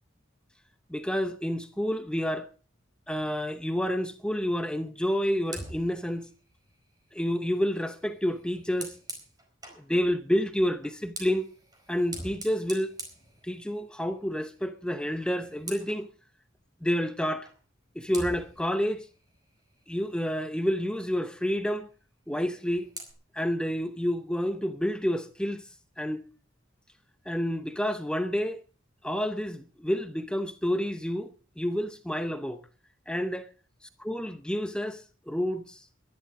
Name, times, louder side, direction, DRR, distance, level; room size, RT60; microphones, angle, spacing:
voice 1, 0.9-2.5 3.1-6.3 7.1-8.9 9.8-11.5 11.9-12.9 13.4-16.1 16.8-17.5 17.9-19.1 19.9-21.9 22.3-22.9 23.3-25.7 26.0-26.2 27.3-28.6 29.0-31.3 31.6-32.6 33.1-33.5 34.0-35.8, equal, 5° left, 0.8 m, -29 dB
Fire, 5.4-9.9 10.8-14.0 14.4-14.7 15.0-16.1 17.5-17.6 18.1-20.4 22.3-23.1, right 2 dB, 20° right, 4.6 m, -45 dB
21.5 x 11.5 x 3.7 m
head